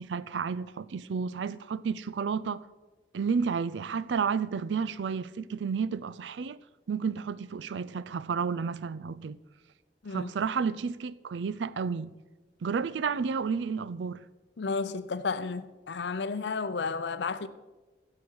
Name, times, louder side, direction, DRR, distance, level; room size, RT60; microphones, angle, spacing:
voice 1, 0.0-2.6 3.1-6.6 6.9-9.4 10.1-12.1 12.6-14.2, right 5 dB, 85° right, 0.4 m, -31 dB
voice 2, 14.6-17.5, left 4 dB, 75° left, 0.6 m, -32 dB
15.5 x 6.9 x 4.7 m
head